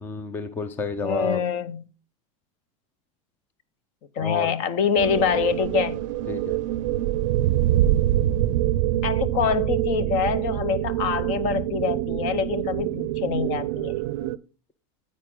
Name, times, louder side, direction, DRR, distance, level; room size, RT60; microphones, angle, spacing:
voice 1, 0.0-1.4 4.2-4.5 6.3-6.6, left 3 dB, 10° left, 0.5 m, -30 dB
voice 2, 1.0-1.8 4.2-6.0 9.0-14.0, left 7 dB, 40° left, 0.8 m, -25 dB
sound 1, 5.0-14.4, right 13 dB, 65° right, 0.5 m, -25 dB
9.6 x 8.6 x 3.8 m
supercardioid pair, 165°, 17 cm